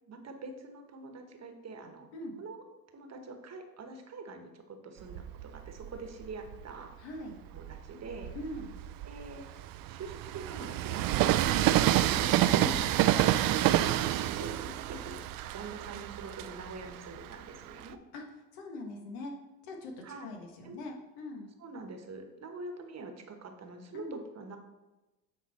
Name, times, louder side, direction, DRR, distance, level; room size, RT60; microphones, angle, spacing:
voice 1, 0.1-2.1 2.4-2.6 2.9-6.9 7.5-8.3 9.0-9.5 9.9-12.5 13.9-15.3 15.5-18.0 20.0-20.3 20.6-20.8 21.6-24.6, right 3 dB, 40° right, 5 dB, 1.2 m, -45 dB
Train, 5.0-6.7 7.3-17.9, right 13 dB, 55° right, 0.5 m, -29 dB
voice 2, 7.0-7.3 8.3-8.7 12.5-12.9 18.1-18.2 18.5-19.3 19.6-19.9 20.2-21.5 23.9-24.2, left 2 dB, 80° left, 2 dB, 1.4 m, -41 dB
8.8 x 3.9 x 4.2 m, 1.1 s
supercardioid pair, 80°, 42 cm